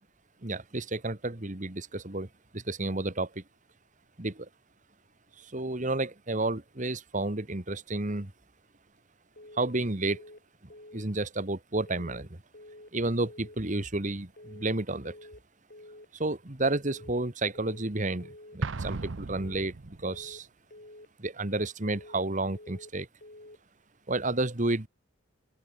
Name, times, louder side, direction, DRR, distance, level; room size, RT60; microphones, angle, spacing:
voice 1, 0.4-2.3 2.5-3.4 4.2-4.5 5.5-8.3 9.6-10.2 10.9-12.3 12.9-15.1 16.1-19.7 20.0-20.5 21.2-23.1 24.1-24.9, right 2 dB, 35° right, 1.7 m, -31 dB
sound 1, 9.4-9.8 10.0-10.4 10.7-11.1 11.9-12.3 12.5-12.9 13.2-13.6 14.4-14.8 15.0-15.4 15.7-16.1 16.9-17.3 17.5-17.9 18.2-18.6 19.4-19.8 20.0-20.4 20.7-21.1 21.9-22.3 22.5-22.9 23.2-23.6, left 1 dB, 50° left, 7.2 m, -49 dB
Explosion, 18.6-20.3, right 3 dB, 65° right, 0.7 m, -35 dB
open air
head